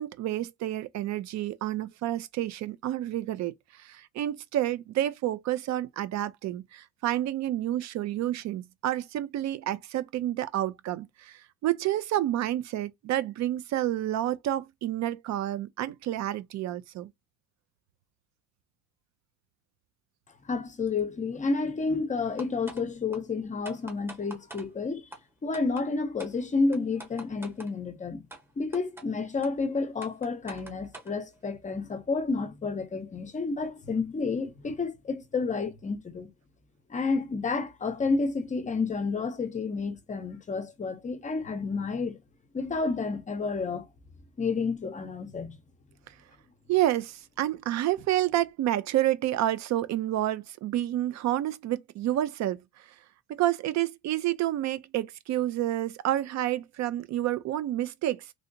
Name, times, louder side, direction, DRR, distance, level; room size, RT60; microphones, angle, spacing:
voice 1, 0.0-17.1 46.7-52.9 53.4-58.3, right 13 dB, 55° right, 0.4 m, -29 dB
voice 2, 20.5-25.0 25.4-28.3 28.6-36.3 36.9-42.2 42.5-43.9 44.4-45.6, left 4 dB, 20° left, 0.6 m, -30 dB
sound 1, 22.4-22.8 23.1-23.2 23.6-24.6 25.1-25.2 25.5-25.8 26.2-26.3 26.7-27.7 28.3-28.4 28.7-29.0 29.4-29.5 30.0-31.1, right 2 dB, 5° right, 0.9 m, -44 dB
3.3 x 2.7 x 2.6 m
cardioid pair, 150°, 34 cm